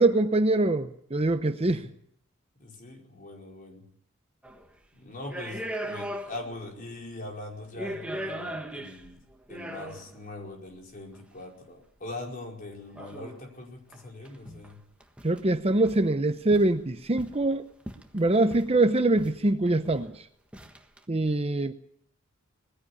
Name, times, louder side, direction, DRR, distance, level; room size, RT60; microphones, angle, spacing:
voice 1, 0.0-1.8 15.2-17.6 18.1-20.2 21.1-21.7, right 2 dB, 30° right, 9 dB, 0.8 m, -24 dB
voice 2, 2.6-3.9 4.9-9.2 9.5-14.8, left 2 dB, 40° left, 0 dB, 5.0 m, -42 dB
sound 1, 4.4-4.7 5.2-6.6 6.9-7.0 7.6-10.2 11.1-11.2 12.9-13.4 13.9-14.0 14.2-14.7 15.0-15.4 15.9-16.1 16.5-17.5 17.9-18.8 19.2-19.4 19.7-20.1 20.5-21.0, equal, 5° right, 1.4 m, -38 dB
20.0 x 15.5 x 8.5 m, 0.67 s
head